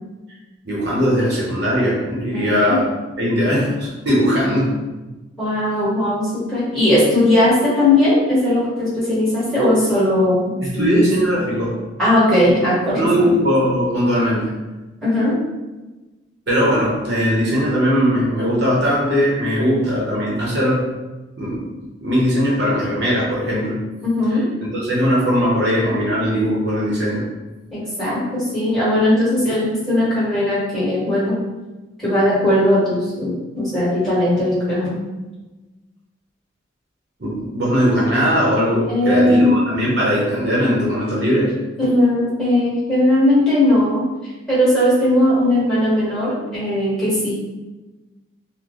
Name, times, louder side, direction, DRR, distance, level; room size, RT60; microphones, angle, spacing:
voice 1, 0.6-2.8 3.2-4.8 10.6-11.7 12.9-14.5 16.5-20.9 21.4-21.6 22.0-23.9 24.7-27.3 37.2-41.5, equal, 55° right, -6 dB, 0.8 m, -19 dB
voice 2, 2.3-2.8 5.4-11.1 12.0-13.4 15.0-15.3 24.0-24.4 27.7-31.3 32.0-35.0 38.9-39.6 41.8-44.0 44.5-47.3, left 1 dB, ahead, -10 dB, 1.4 m, -18 dB
3.8 x 2.2 x 3.1 m, 1.2 s
head